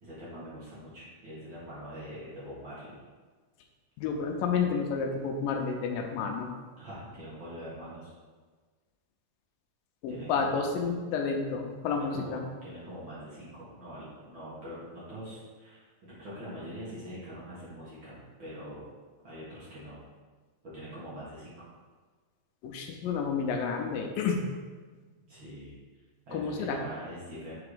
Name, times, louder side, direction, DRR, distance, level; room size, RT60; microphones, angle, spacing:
voice 1, 0.0-2.9 6.8-8.1 10.1-10.7 11.9-18.8 19.2-20.0 20.6-21.7 25.3-25.8 26.3-27.6, equal, 40° right, -9 dB, 2.3 m, -43 dB
voice 2, 4.0-6.5 10.0-12.4 22.6-24.4 26.3-26.8, left 5 dB, 85° left, 2 dB, 2.4 m, -30 dB
5.9 x 4.7 x 5.0 m, 1.4 s
omnidirectional pair, 4.0 m